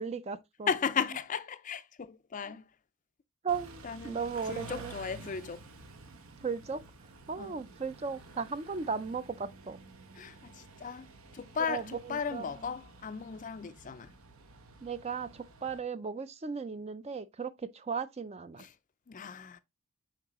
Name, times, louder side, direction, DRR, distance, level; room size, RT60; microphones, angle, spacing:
voice 1, 0.0-0.7 2.4-2.5 3.4-4.9 6.4-6.8 7.3-9.8 11.6-12.5 14.8-18.7, right 5 dB, 30° right, 0.4 m, -36 dB
voice 2, 0.7-2.7 3.8-4.2 4.5-5.6 7.4-7.6 10.2-11.1 11.3-14.1 18.6-18.7 19.1-19.6, left 6 dB, 35° left, 0.4 m, -36 dB
Car / Idling / Accelerating revving vroom, 3.5-15.8, right 3 dB, 75° right, 1.0 m, -51 dB
7.3 x 4.6 x 3.0 m
head